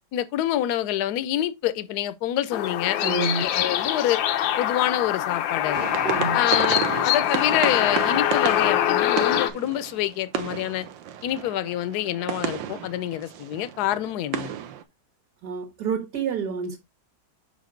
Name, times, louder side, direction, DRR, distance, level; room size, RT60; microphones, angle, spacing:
voice 1, 0.1-4.2 4.6-5.9 6.3-10.9 11.2-14.5, left 12 dB, 70° left, 1.1 m, -27 dB
sound 1, 2.5-9.5, left 11 dB, 85° left, 1.4 m, -24 dB
voice 2, 3.0-3.5 6.0-6.4 15.4-16.8, right 5 dB, 60° right, 2.1 m, -28 dB
sound 2, 5.7-14.8, right 10 dB, 80° right, 1.5 m, -33 dB
6.1 x 5.2 x 3.7 m
omnidirectional pair, 2.0 m